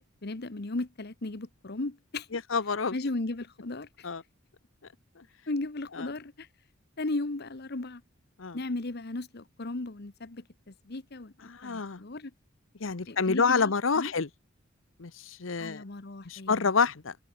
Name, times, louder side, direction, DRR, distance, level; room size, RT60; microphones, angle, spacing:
voice 1, 0.0-2.3 2.9-4.1 5.5-6.5 7.0-8.0 8.5-11.3 11.6-12.3 13.1-14.1 15.6-16.7, left 2 dB, 55° left, 1.2 m, -36 dB
voice 2, 2.3-2.9 4.0-4.2 5.2-5.3 6.0-6.1 8.4-8.6 11.4-12.0 12.8-14.3 15.0-15.8 16.2-17.2, left 5 dB, 85° left, 1.0 m, -28 dB
head